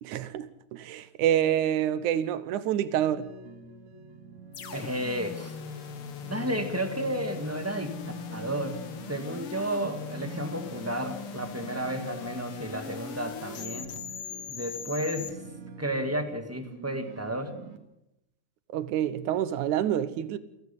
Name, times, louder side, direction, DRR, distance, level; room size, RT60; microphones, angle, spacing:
voice 1, 0.0-3.3 18.7-20.4, right 10 dB, 85° right, 2.5 m, -27 dB
sound 1, 3.0-17.8, right 4 dB, 70° right, 3.1 m, -46 dB
sound 2, 4.5-15.3, left 7 dB, 55° left, 2.1 m, -40 dB
voice 2, 4.7-5.5 6.3-8.0 8.3-8.8 9.1-13.9 14.5-15.4 15.8-17.5, right 1 dB, 10° right, 0.9 m, -32 dB
28.5 x 11.0 x 8.3 m
omnidirectional pair, 3.4 m